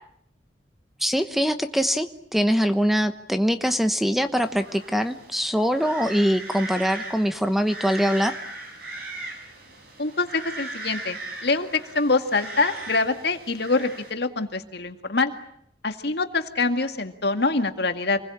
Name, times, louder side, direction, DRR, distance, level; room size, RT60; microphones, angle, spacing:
voice 1, 1.0-8.3, equal, ahead, 9 dB, 1.1 m, -23 dB
sound 1, 4.3-14.1, right 2 dB, 60° right, 7.3 m, -38 dB
voice 2, 10.0-15.3 15.8-18.2, left 3 dB, 65° left, 7 dB, 2.2 m, -25 dB
27.5 x 21.0 x 8.8 m, 0.68 s
head